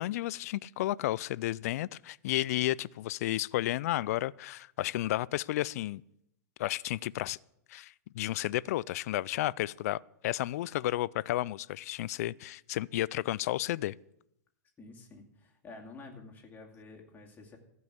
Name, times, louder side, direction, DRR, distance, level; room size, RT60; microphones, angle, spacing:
voice 1, 0.0-6.0 6.6-7.4 7.7-13.9, left 15 dB, 60° left, 0.4 m, -32 dB
voice 2, 14.8-17.6, left 3 dB, 20° left, 2.4 m, -50 dB
15.0 x 5.5 x 7.9 m
hypercardioid pair, 125°, 9 cm